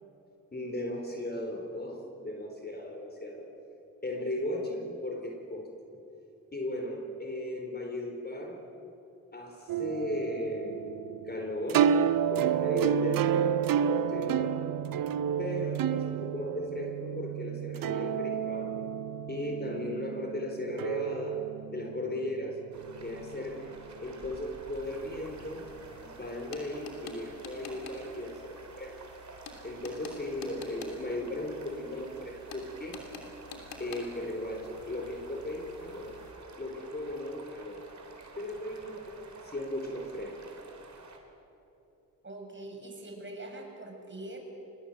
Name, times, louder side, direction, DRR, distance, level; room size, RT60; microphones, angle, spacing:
voice 1, 0.5-3.5 4.0-5.7 6.5-8.7 9.3-10.9 11.2-11.9 12.3-14.6 15.4-18.7 19.3-21.4 21.7-22.6 23.0-23.7 24.0-25.7 26.0-28.9 29.6-33.0 33.8-36.2 36.6-37.8 38.4-40.4, left 1 dB, 30° left, 3 dB, 4.3 m, -36 dB
sound 1, 9.7-23.7, right 8 dB, 75° right, 0.8 m, -30 dB
sound 2, 22.7-41.2, right 3 dB, 55° right, 4.0 m, -50 dB
sound 3, 24.8-36.3, left 3 dB, 75° left, 3.3 m, -49 dB
voice 2, 42.2-44.4, right 2 dB, 35° right, 2 dB, 6.5 m, -43 dB
25.5 x 20.5 x 7.6 m, 2.8 s
supercardioid pair, 45°, 35 cm